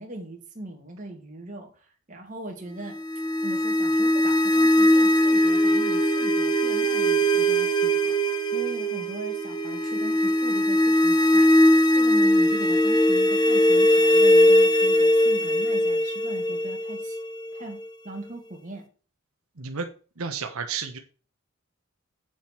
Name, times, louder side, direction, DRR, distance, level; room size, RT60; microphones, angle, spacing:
voice 1, 0.0-3.0 3.4-8.2 8.5-11.5 11.9-17.2 17.5-18.9, right 1 dB, 35° right, 1 dB, 2.6 m, -40 dB
sound 1, 2.9-17.9, equal, 20° left, 0.9 m, -20 dB
voice 2, 19.6-19.9 20.2-21.0, right 5 dB, 85° right, 5 dB, 1.2 m, -31 dB
8.0 x 7.5 x 4.6 m, 0.38 s
head